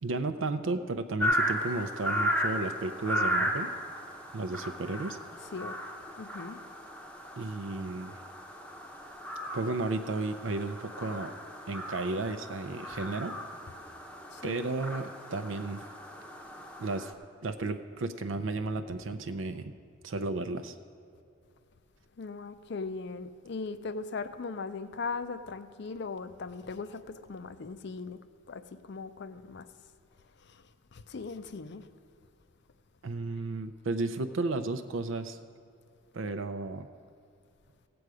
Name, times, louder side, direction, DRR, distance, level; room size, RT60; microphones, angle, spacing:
voice 1, 0.0-3.7 4.3-5.2 7.4-8.1 9.5-11.3 11.7-13.4 14.4-15.8 16.8-17.1 17.4-19.7 20.0-20.8 33.0-35.4 36.1-36.9, right 3 dB, 65° right, 8 dB, 0.5 m, -33 dB
sound 1, 1.2-17.1, equal, 5° left, 0.8 m, -35 dB
voice 2, 6.2-6.6 14.3-14.7 22.2-27.0 27.3-28.2 28.5-29.7 30.5-30.6 30.9-31.9, left 4 dB, 55° left, 12 dB, 0.5 m, -39 dB
16.5 x 7.8 x 4.8 m, 2.3 s
head